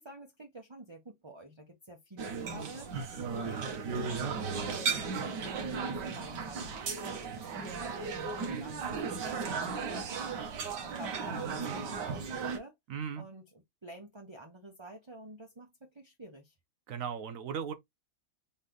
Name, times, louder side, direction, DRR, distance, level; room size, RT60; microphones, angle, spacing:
voice 1, 0.0-2.9 3.3-4.3 4.7-10.5 10.8-12.7 13.2-16.5, right 1 dB, 20° right, 0.9 m, -49 dB
sound 1, 2.2-12.6, right 5 dB, 90° right, 1.7 m, -35 dB
voice 2, 12.9-13.2 16.9-17.7, right 7 dB, 65° right, 0.9 m, -37 dB
4.2 x 3.2 x 3.8 m
omnidirectional pair, 1.8 m